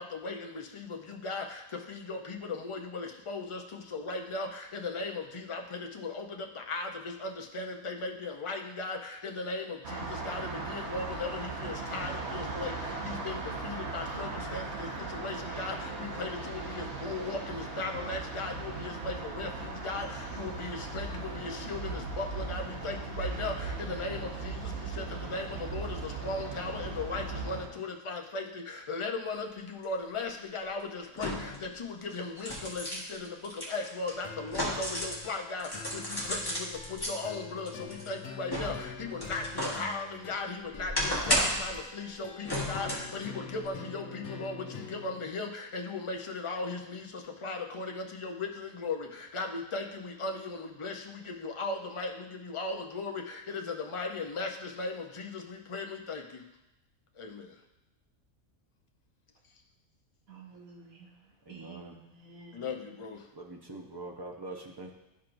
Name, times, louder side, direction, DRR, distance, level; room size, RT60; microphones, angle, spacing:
voice 1, 0.0-56.5 57.1-57.5 62.5-63.3, left 3 dB, 45° left, 2 dB, 0.4 m, -37 dB
sound 1, 9.8-27.7, right 3 dB, 55° right, 1.4 m, -38 dB
sound 2, 29.8-29.9 31.1-31.6 32.1-35.2 35.6-37.1 37.7-39.8 40.2-41.7 42.4-43.1 43.6-43.7, equal, 15° left, 1.3 m, -33 dB
sound 3, 34.2-45.2, left 4 dB, 85° left, 1.2 m, -46 dB
voice 2, 60.3-61.2 61.5-62.7, right 4 dB, 70° right, -1 dB, 1.7 m, -51 dB
voice 3, 61.4-62.0 63.3-64.9, right 2 dB, 30° right, 1 dB, 0.4 m, -43 dB
12.0 x 4.5 x 2.6 m, 0.93 s
omnidirectional pair, 1.5 m